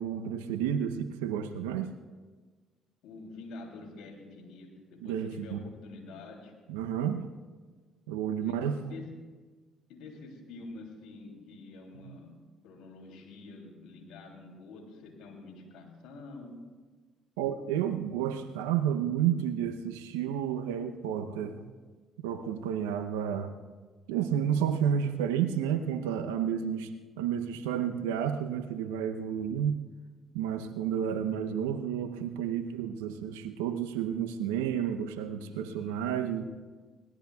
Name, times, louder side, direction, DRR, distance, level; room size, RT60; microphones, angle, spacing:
voice 1, 0.0-1.9 5.0-5.6 6.7-7.3 8.1-8.8 12.0-12.2 17.4-21.7 22.2-23.5 24.1-26.9 27.2-29.8 30.3-36.4, right 9 dB, 90° right, 7 dB, 0.7 m, -31 dB
voice 2, 3.0-6.5 8.4-9.1 9.9-12.4 12.6-16.6 35.3-36.2, left 3 dB, 75° left, 1 dB, 3.0 m, -47 dB
24.0 x 18.0 x 2.3 m, 1.4 s
hypercardioid pair, 60°, 0 cm